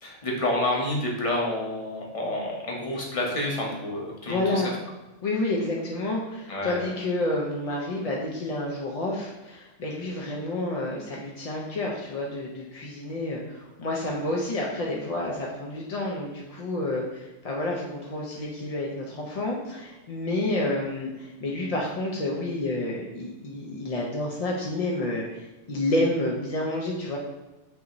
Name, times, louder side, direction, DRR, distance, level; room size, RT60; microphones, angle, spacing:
voice 1, 0.0-4.6 6.5-6.8, left 1 dB, 30° left, -2 dB, 0.8 m, -29 dB
voice 2, 4.3-4.7 5.2-27.2, left 2 dB, 50° left, -2 dB, 0.4 m, -29 dB
5.5 x 2.7 x 2.9 m, 1.1 s
omnidirectional pair, 1.3 m